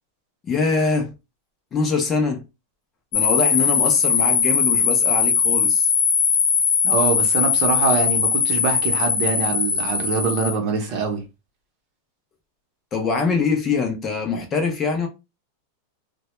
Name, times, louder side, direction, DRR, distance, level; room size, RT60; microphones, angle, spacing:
voice 1, 0.4-1.1 1.7-2.4 3.1-5.9 12.9-15.1, left 4 dB, 20° left, 0.4 m, -23 dB
sound 1, 3.1-10.5, left 6 dB, 50° left, 0.8 m, -20 dB
voice 2, 6.8-11.2, right 4 dB, 40° right, 0.7 m, -24 dB
2.1 x 2.0 x 2.9 m
supercardioid pair, 160°, 0 cm